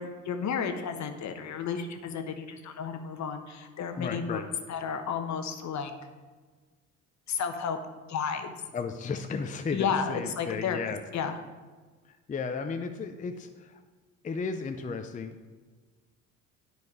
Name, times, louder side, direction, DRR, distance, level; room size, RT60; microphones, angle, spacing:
voice 1, 0.0-4.4 4.7-5.9 7.3-7.8 8.1-8.5 9.7-11.4, left 6 dB, 50° left, 7 dB, 1.0 m, -32 dB
voice 2, 4.0-4.5 8.7-11.0 12.3-13.8 14.2-15.4, left 5 dB, 20° left, 6 dB, 0.5 m, -34 dB
9.6 x 4.7 x 4.7 m, 1.4 s
supercardioid pair, 70°, 36 cm